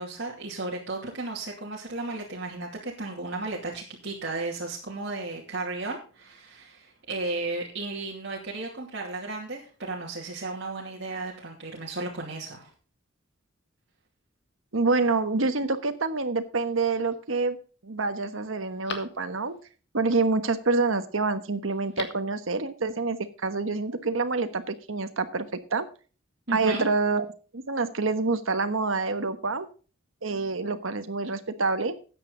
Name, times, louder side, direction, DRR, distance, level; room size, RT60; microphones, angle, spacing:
voice 1, 0.0-12.7 26.5-26.8, right 2 dB, 60° right, -3 dB, 2.6 m, -34 dB
voice 2, 14.7-17.6 17.8-19.5 19.9-25.4 25.7-25.9 26.5-29.7 30.2-31.9, right 3 dB, 80° right, 10 dB, 1.3 m, -27 dB
Telephone, 16.6-17.2 17.7-17.8 18.2-19.7 21.7-22.3 22.6-22.7, left 5 dB, 60° left, 1.8 m, -42 dB
13.5 x 9.1 x 3.9 m, 0.36 s
head